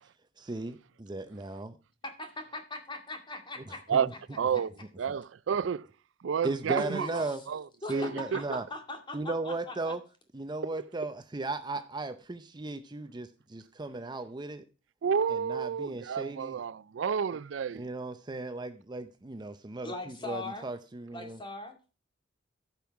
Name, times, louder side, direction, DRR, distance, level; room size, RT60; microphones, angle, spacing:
voice 1, 0.4-1.8 3.9-4.1 5.1-5.2 6.4-7.4 7.9-8.6 9.1-10.0 10.3-14.6 15.3-16.6 17.7-21.4, right 2 dB, 25° right, 0.6 m, -36 dB
voice 2, 2.0-4.0 6.7-7.4 7.8-9.9 19.8-20.7 21.1-21.8, left 2 dB, 25° left, 2.3 m, -40 dB
voice 3, 4.4-4.7 5.0-5.9 6.2-7.6 7.9-8.4 15.0-17.9, right 7 dB, 85° right, 0.4 m, -30 dB
15.0 x 5.4 x 4.6 m
head